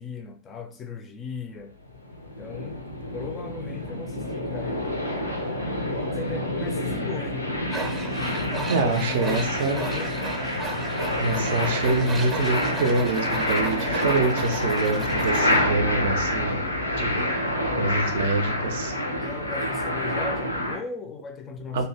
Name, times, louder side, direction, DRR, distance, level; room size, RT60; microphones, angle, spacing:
voice 1, 0.0-1.7 2.4-2.8 3.1-4.9 5.9-7.6 8.5-10.1 16.9-17.3 17.7-18.1 19.2-21.9, left 5 dB, 25° left, 0.4 m, -37 dB
sound 1, 1.9-20.8, left 1 dB, 85° left, 0.5 m, -28 dB
Tools, 7.7-15.6, right 3 dB, 15° right, 0.6 m, -35 dB
voice 2, 8.7-9.8 11.2-16.6 17.0-17.3 17.8-18.9 21.7-21.9, right 3 dB, 60° right, 0.4 m, -25 dB
2.7 x 2.2 x 3.1 m
figure-of-eight pair, 90°, 0 cm